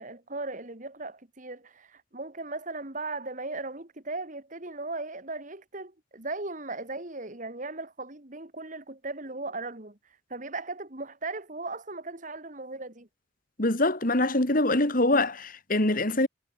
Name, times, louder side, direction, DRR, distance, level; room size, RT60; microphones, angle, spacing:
voice 1, 0.0-10.0 10.3-13.1, right 3 dB, 40° right, 2.3 m, -37 dB
voice 2, 13.6-16.3, left 2 dB, 45° left, 2.4 m, -24 dB
head